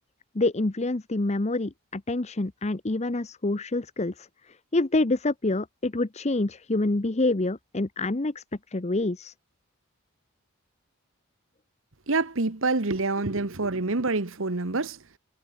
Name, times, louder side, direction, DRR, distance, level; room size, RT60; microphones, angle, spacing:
voice 1, 0.3-4.3 4.7-8.4 8.7-9.3, left 2 dB, 30° left, 0.8 m, -27 dB
voice 2, 12.1-15.0, right 3 dB, 60° right, 1.3 m, -26 dB
head